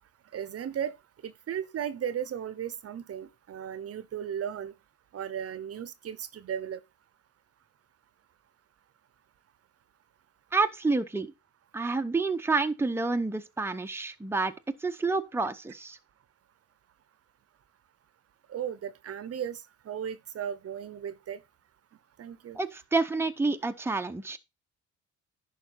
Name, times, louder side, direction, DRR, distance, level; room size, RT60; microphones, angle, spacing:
voice 1, 0.3-1.0 1.2-4.7 5.1-6.8 18.5-21.4 22.2-22.6, right 9 dB, 50° right, 0.8 m, -36 dB
voice 2, 10.5-11.3 11.7-14.5 14.8-16.0 22.5-24.4, right 3 dB, 10° right, 0.8 m, -28 dB
10.5 x 4.9 x 4.2 m
cardioid pair, 90°, 30 cm